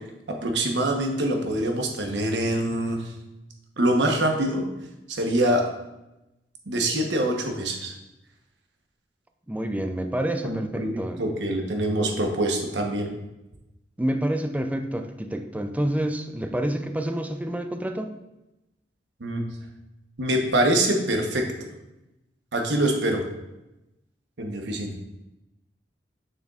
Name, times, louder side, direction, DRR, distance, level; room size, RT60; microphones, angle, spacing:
voice 1, 0.3-3.0 3.8-4.6 5.1-5.7 6.7-7.9 10.4-13.1 19.2-19.4 20.2-21.5 22.5-23.2 24.4-24.9, right 1 dB, 90° right, 3 dB, 1.0 m, -24 dB
voice 2, 9.5-11.2 14.0-18.1, right 1 dB, 10° right, 6 dB, 0.4 m, -28 dB
6.8 x 6.4 x 2.4 m, 0.95 s
head